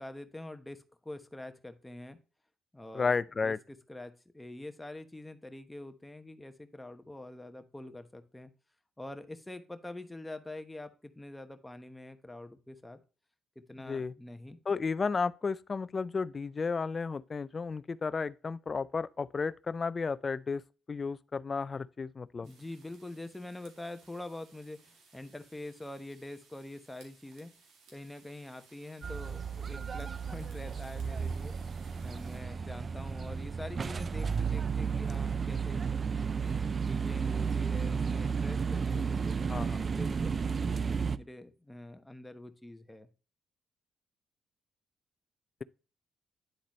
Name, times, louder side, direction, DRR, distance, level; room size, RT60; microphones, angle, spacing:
voice 1, 0.0-2.2 2.7-8.5 9.0-13.0 13.6-14.6 22.4-27.5 27.9-35.8 36.3-39.3 39.9-43.1, left 1 dB, 10° left, 0.9 m, -45 dB
voice 2, 2.9-3.6 13.8-14.1 14.7-20.6 20.9-22.5 39.0-39.1 39.5-39.8, left 4 dB, 35° left, 0.4 m, -33 dB
sound 1, 22.4-32.4, right 4 dB, 85° right, 2.2 m, -62 dB
sound 2, 29.0-41.2, right 6 dB, 40° right, 0.4 m, -33 dB
10.0 x 4.0 x 3.0 m
cardioid pair, 90°, 0 cm